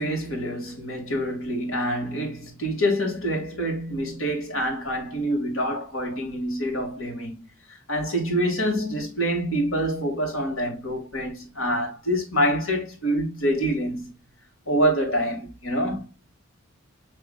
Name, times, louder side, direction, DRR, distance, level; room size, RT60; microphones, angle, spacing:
voice 1, 0.0-7.3 7.9-14.1 14.7-16.1, equal, 80° left, 2.1 m, -26 dB
6.8 x 3.1 x 2.4 m
head